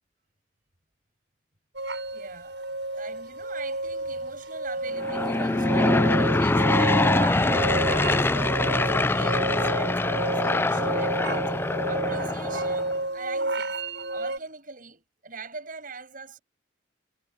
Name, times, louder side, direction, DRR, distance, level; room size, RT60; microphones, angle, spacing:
sound 1, 1.7-14.4, right 2 dB, 70° right, 7.7 m, -31 dB
voice 1, 2.1-2.6 2.9-13.8 14.1-16.4, right 4 dB, 50° right, 6.5 m, -42 dB
Aircraft / Engine, 4.9-12.9, left 2 dB, 10° left, 0.3 m, -24 dB
head